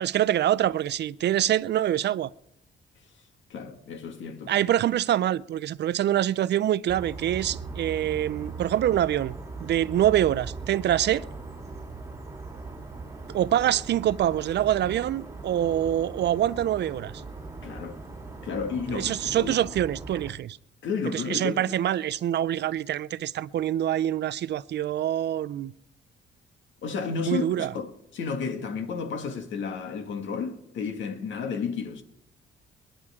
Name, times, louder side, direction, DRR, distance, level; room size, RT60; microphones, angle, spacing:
voice 1, 0.0-2.3 4.5-9.3 9.6-11.2 13.3-17.2 18.9-20.6 21.1-25.7 27.2-27.7, right 11 dB, 60° right, 0.5 m, -25 dB
voice 2, 3.5-4.5 17.6-18.0 18.4-19.5 20.8-21.7 26.8-32.0, left 5 dB, 70° left, 2.0 m, -32 dB
sound 1, 6.9-20.3, right 3 dB, 15° right, 2.6 m, -40 dB
26.5 x 10.0 x 3.7 m
cardioid pair, 90°, 20 cm